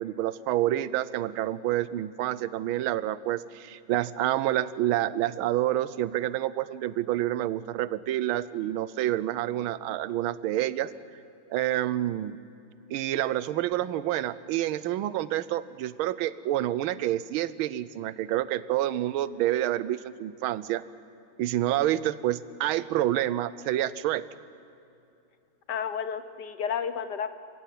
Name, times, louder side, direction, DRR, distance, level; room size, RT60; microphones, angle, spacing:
voice 1, 0.0-10.9 11.5-12.4 12.9-20.8 21.4-24.2, right 13 dB, 75° right, 16 dB, 1.5 m, -28 dB
voice 2, 25.7-27.3, left 7 dB, 60° left, 11 dB, 1.4 m, -31 dB
27.5 x 16.5 x 9.4 m, 2.7 s
omnidirectional pair, 2.4 m